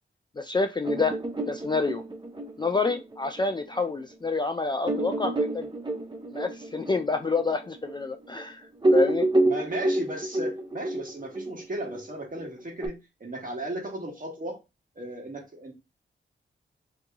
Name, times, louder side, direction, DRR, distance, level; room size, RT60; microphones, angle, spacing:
voice 1, 0.4-1.1 1.5-2.0 2.6-5.7 6.3-8.6 8.9-9.3, left 4 dB, 20° left, 0.4 m, -28 dB
sound 1, 0.8-3.9 4.4-4.5 4.8-8.4 8.7-12.9, right 2 dB, 25° right, 0.8 m, -28 dB
voice 2, 9.4-14.6 14.9-15.7, right 1 dB, 45° right, 1.5 m, -36 dB
3.0 x 2.6 x 3.4 m
cardioid pair, 55°, 20 cm